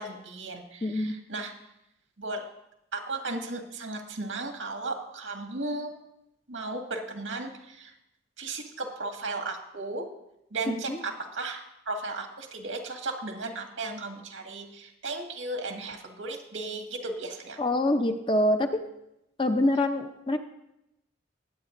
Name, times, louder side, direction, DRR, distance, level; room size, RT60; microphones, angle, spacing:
voice 1, 0.0-1.5 2.2-2.4 2.9-5.9 6.5-7.9 8.4-10.1 10.5-17.6, right 2 dB, 80° right, 3 dB, 1.9 m, -35 dB
voice 2, 0.8-1.2 10.9-11.0 17.6-18.8 19.4-20.4, left 1 dB, 25° left, 6 dB, 0.6 m, -25 dB
20.5 x 8.8 x 2.6 m, 0.85 s
head